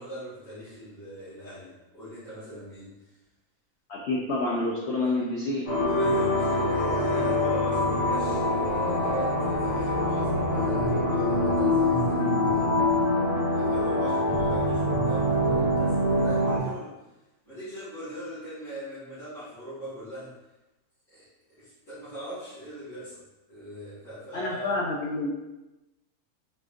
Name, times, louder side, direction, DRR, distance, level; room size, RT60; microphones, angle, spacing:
voice 1, 0.0-2.9 5.8-16.9 17.4-20.3 21.1-21.2 21.6-23.2 23.5-24.7, equal, 55° left, -16 dB, 2.1 m, -40 dB
voice 2, 3.9-5.7 24.3-25.3, left 2 dB, 70° left, -3 dB, 0.6 m, -28 dB
sound 1, 5.7-16.6, left 1 dB, 35° left, 0.9 m, -24 dB
4.2 x 3.6 x 2.5 m, 1.0 s
omnidirectional pair, 1.6 m